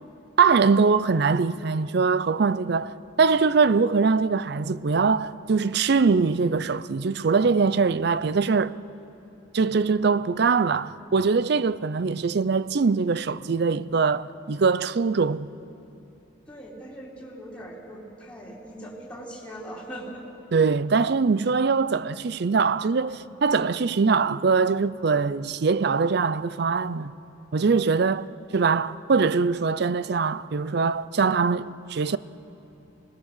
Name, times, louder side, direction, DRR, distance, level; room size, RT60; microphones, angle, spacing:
voice 1, 0.4-8.7 9.5-15.5 20.5-27.1 27.5-32.2, right 4 dB, 60° right, 0.5 m, -22 dB
voice 2, 16.5-20.2, equal, 5° left, 3.6 m, -40 dB
26.5 x 19.5 x 6.7 m
head